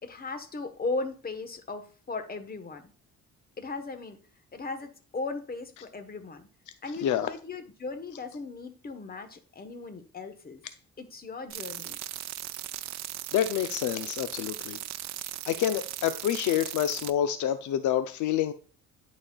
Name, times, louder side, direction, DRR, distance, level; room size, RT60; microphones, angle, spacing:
voice 1, 0.0-2.8 3.6-4.2 4.5-6.5 6.8-10.6 11.0-12.0, left 3 dB, 30° left, 8 dB, 1.2 m, -37 dB
sound 1, 11.5-17.1, right 13 dB, 65° right, 0.5 m, -38 dB
voice 2, 13.3-14.8 15.5-18.5, left 10 dB, 75° left, 11 dB, 0.6 m, -27 dB
11.0 x 4.2 x 2.3 m, 0.40 s
cardioid pair, 90°, 30 cm